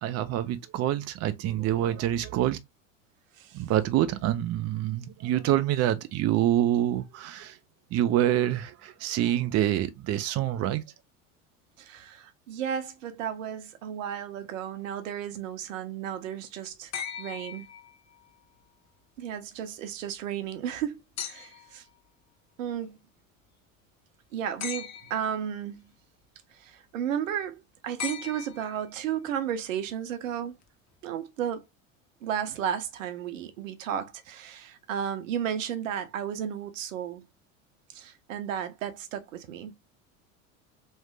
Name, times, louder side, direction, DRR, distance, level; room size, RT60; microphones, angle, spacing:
voice 1, 0.0-2.6 3.5-7.6 7.9-10.8, right 12 dB, 40° right, 0.6 m, -26 dB
voice 2, 11.8-16.9 17.2-17.7 19.2-21.8 22.6-23.0 24.3-25.9 26.6-30.5 31.0-31.6 32.2-37.2 37.9-39.7, right 9 dB, 75° right, 1.0 m, -33 dB
Wine Glass Klink, 16.9-18.3 21.2-21.8 24.6-25.4 28.0-29.0 30.6-30.7, left 8 dB, 45° left, 1.1 m, -38 dB
3.6 x 3.3 x 3.2 m
hypercardioid pair, 80°, 39 cm